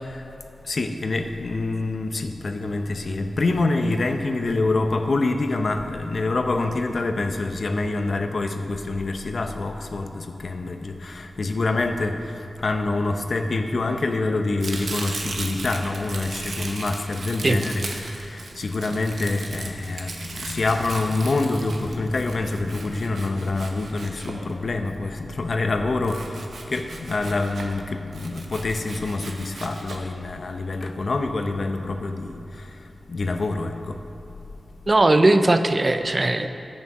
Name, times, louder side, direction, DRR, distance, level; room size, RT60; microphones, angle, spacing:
voice 1, 0.0-0.4 0.6-34.0, left 2 dB, 65° left, 6 dB, 0.8 m, -26 dB
Domestic sounds home sounds, 14.6-24.9 26.0-27.8 28.1-30.0, right 3 dB, 85° right, 1.1 m, -37 dB
voice 2, 34.9-36.5, right 2 dB, 40° right, 9 dB, 0.6 m, -18 dB
9.4 x 8.6 x 6.1 m, 2.6 s
cardioid pair, 50°, 0 cm